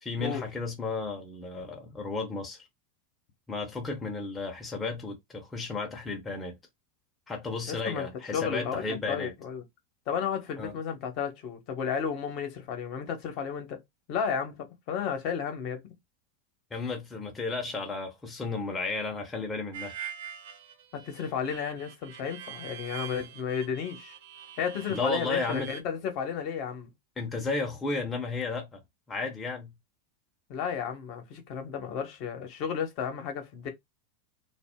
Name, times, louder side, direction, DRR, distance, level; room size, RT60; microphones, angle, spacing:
voice 1, 0.0-2.7 3.5-6.6 7.3-9.3 10.6-10.7 16.7-20.0 24.9-25.7 27.2-28.8 29.1-29.7, left 3 dB, 15° left, 0.8 m, -33 dB
voice 2, 7.7-8.1 8.3-9.6 10.1-13.8 14.1-15.8 20.9-24.1 24.6-26.9 30.5-33.7, left 7 dB, 55° left, 1.0 m, -33 dB
Harmonica, 19.7-25.8, right 9 dB, 65° right, 0.6 m, -44 dB
2.5 x 2.0 x 3.6 m
hypercardioid pair, 105°, 0 cm